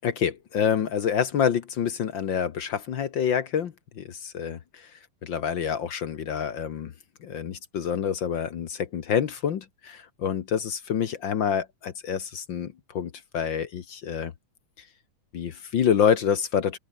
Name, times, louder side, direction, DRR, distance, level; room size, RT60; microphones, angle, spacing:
voice 1, 0.0-4.9 5.2-6.9 7.2-14.3 15.3-16.8, left 8 dB, 55° left, 1.4 m, -27 dB
open air
omnidirectional pair, 3.4 m